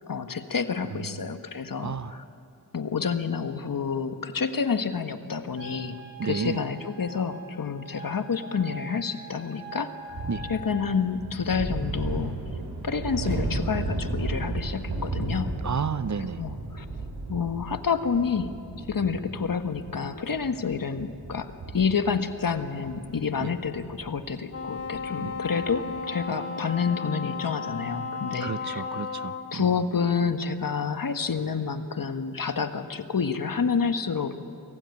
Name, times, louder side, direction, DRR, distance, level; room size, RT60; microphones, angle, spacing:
voice 1, 0.1-2.2 2.7-9.9 10.5-12.3 12.8-15.5 16.4-16.8 17.3-18.5 18.9-28.8 29.5-34.3, left 6 dB, 55° left, 8 dB, 1.4 m, -29 dB
voice 2, 0.9-1.4 1.8-2.2 6.2-6.6 10.3-10.4 15.6-16.4 23.4-23.5 25.2-25.3 28.4-29.7, right 6 dB, 45° right, 13 dB, 0.8 m, -32 dB
Wind instrument woodwind instrument, 5.5-10.9, right 1 dB, 30° right, 3.5 m, -43 dB
sound 1, 10.1-25.9, right 2 dB, 90° right, 3.9 m, -35 dB
Wind instrument woodwind instrument 2, 24.5-29.6, left 5 dB, 35° left, 1.3 m, -34 dB
24.5 x 15.5 x 9.6 m, 2.5 s
cardioid pair, 50°, 39 cm